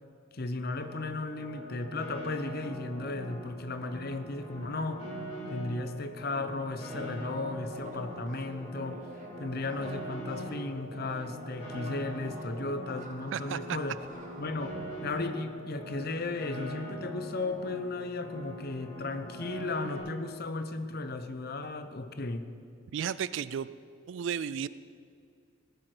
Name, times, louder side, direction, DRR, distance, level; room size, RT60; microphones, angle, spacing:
voice 1, 0.3-5.1 5.5-9.1 9.4-14.0 14.4-22.5, left 3 dB, 50° left, 9 dB, 0.8 m, -35 dB
Piano, 0.8-20.0, equal, 30° left, 4.2 m, -42 dB
sound 1, 6.9-16.1, right 1 dB, 40° right, 1.4 m, -49 dB
voice 2, 13.3-13.8 22.9-23.7 24.1-24.7, right 8 dB, 60° right, 16 dB, 0.3 m, -33 dB
18.0 x 10.5 x 5.0 m, 2.3 s
head